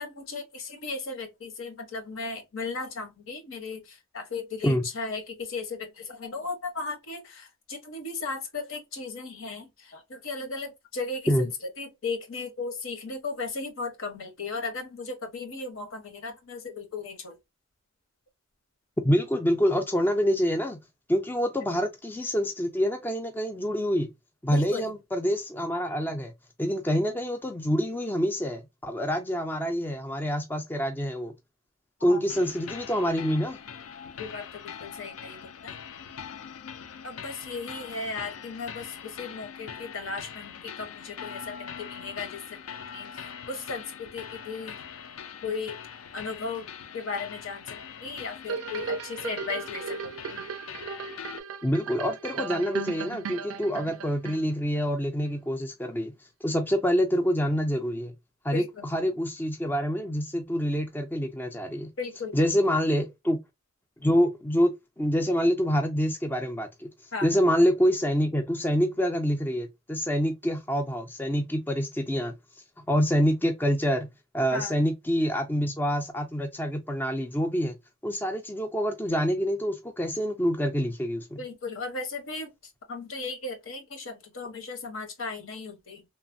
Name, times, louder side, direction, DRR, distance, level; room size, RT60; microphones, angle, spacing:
voice 1, 0.0-11.5 11.8-17.4 24.5-24.9 32.0-32.2 34.2-35.8 37.0-44.8 45.4-45.7 46.1-46.7 46.9-50.4 58.5-58.9 62.0-62.7 67.1-67.3 74.5-74.7 81.4-82.5 82.9-86.0, left 4 dB, 70° left, 0.8 m, -36 dB
voice 2, 19.0-20.8 21.1-24.1 24.4-26.3 26.6-31.3 32.0-33.6 51.6-56.1 56.4-58.1 58.4-58.6 58.9-61.9 62.3-63.4 64.0-66.9 67.2-72.3 72.9-77.7 78.0-81.4, equal, 10° left, 0.3 m, -26 dB
sound 1, 32.3-51.4, left 7 dB, 85° left, 0.4 m, -42 dB
sound 2, 48.5-54.8 55.3-55.4, right 6 dB, 85° right, 0.4 m, -36 dB
3.1 x 2.0 x 2.5 m
head